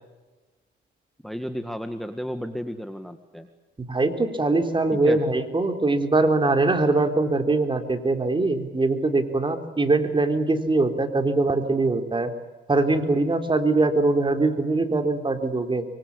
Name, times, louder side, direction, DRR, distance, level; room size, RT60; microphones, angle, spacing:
voice 1, 1.2-3.5 5.0-5.2, equal, ahead, 7 dB, 1.9 m, -32 dB
voice 2, 3.8-12.3 12.7-15.8, right 2 dB, 25° right, 6 dB, 3.6 m, -22 dB
24.5 x 24.0 x 8.5 m, 1.2 s
cardioid pair, 90°, 20 cm